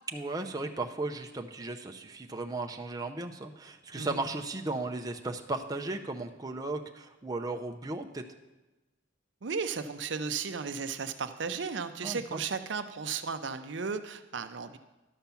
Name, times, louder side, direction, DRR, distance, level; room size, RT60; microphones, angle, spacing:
voice 1, 0.1-8.2 12.0-12.4, right 2 dB, 20° right, 2 dB, 0.6 m, -36 dB
voice 2, 9.4-14.8, right 5 dB, 65° right, 9 dB, 0.6 m, -35 dB
12.0 x 5.8 x 6.9 m, 1.1 s
head